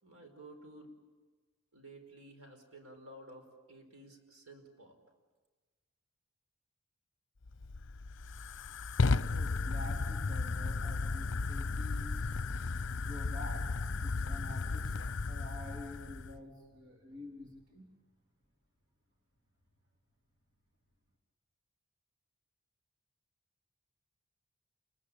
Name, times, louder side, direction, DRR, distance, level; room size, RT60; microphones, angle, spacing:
voice 1, 0.0-0.9 1.7-5.0, right 1 dB, 75° right, 5 dB, 4.9 m, -53 dB
Fire, 7.4-16.4, left 3 dB, 60° left, 0.7 m, -34 dB
voice 2, 9.3-12.3 13.0-17.9, left 1 dB, 55° right, 0 dB, 3.8 m, -49 dB
29.0 x 21.5 x 8.8 m, 1.3 s
head